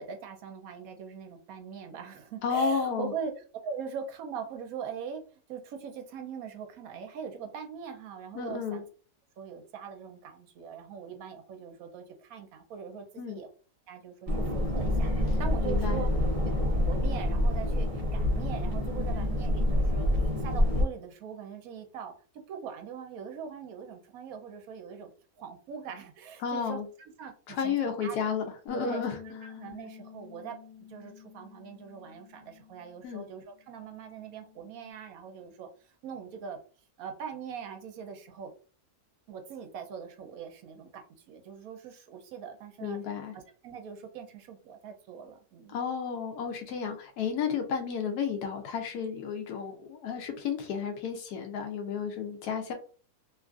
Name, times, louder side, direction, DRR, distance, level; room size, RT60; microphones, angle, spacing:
voice 1, 0.0-3.3 3.6-8.8 9.4-13.5 13.9-16.1 16.4-20.1 20.4-22.1 22.5-25.1 25.4-28.2 28.7-29.0 29.4-30.6 30.9-36.6 37.0-38.5 39.3-43.0 43.3-45.8, right 7 dB, 75° right, 5 dB, 1.0 m, -41 dB
voice 2, 2.4-3.1 8.3-8.8 13.2-13.4 15.6-16.0 26.4-26.8 27.5-29.2 33.0-33.2 42.8-43.3 45.7-52.7, left 6 dB, 85° left, 4 dB, 1.2 m, -32 dB
sound 1, 14.3-20.8, left 1 dB, 40° right, 0.5 m, -27 dB
sound 2, 28.7-33.2 33.5-34.9, left 7 dB, 55° left, 0.4 m, -49 dB
2.9 x 2.4 x 2.3 m, 0.39 s
omnidirectional pair, 1.6 m